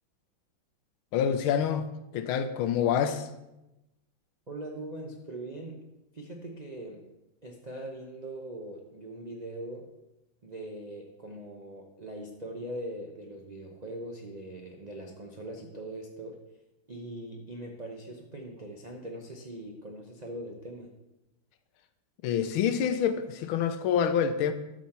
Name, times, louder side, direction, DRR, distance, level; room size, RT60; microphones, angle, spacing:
voice 1, 1.1-3.3 22.2-24.5, left 8 dB, 90° left, 1.5 m, -27 dB
voice 2, 4.5-5.8 6.1-7.0 7.4-9.9 10.4-16.4 16.9-20.9, right 1 dB, 80° right, 0.3 m, -41 dB
12.5 x 6.3 x 4.3 m
omnidirectional pair, 2.2 m